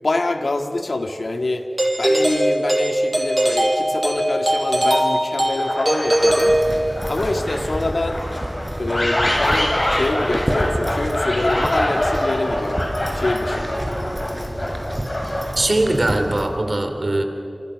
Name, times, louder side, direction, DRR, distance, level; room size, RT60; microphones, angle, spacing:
voice 1, 0.0-1.7 2.0-6.6 7.1-8.2 8.8-12.8 13.1-13.8, left 2 dB, 85° left, 6 dB, 1.8 m, -25 dB
Doorbell, 1.8-7.2, right 1 dB, 35° right, 5.5 m, -20 dB
sound 1, 5.6-6.5 6.9-15.8, left 1 dB, 40° left, 7.1 m, -24 dB
sound 2, 6.2-16.5, equal, 20° right, 5.3 m, -29 dB
voice 2, 15.6-17.2, right 1 dB, 60° right, 6 dB, 3.1 m, -20 dB
28.0 x 27.0 x 6.3 m, 2.6 s
wide cardioid pair, 45°, 0 cm